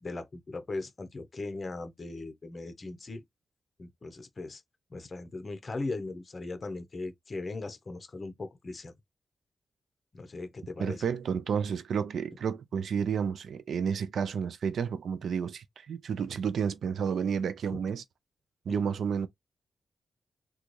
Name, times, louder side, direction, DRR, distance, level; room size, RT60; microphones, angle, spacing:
voice 1, 0.0-3.2 3.8-4.6 4.9-8.9 10.1-11.0 17.7-17.8 18.7-18.8, left 3 dB, 30° left, 0.6 m, -39 dB
voice 2, 10.8-18.0 18.7-19.3, right 7 dB, 70° right, 0.4 m, -31 dB
3.9 x 2.3 x 3.1 m
wide cardioid pair, 180°, 0 cm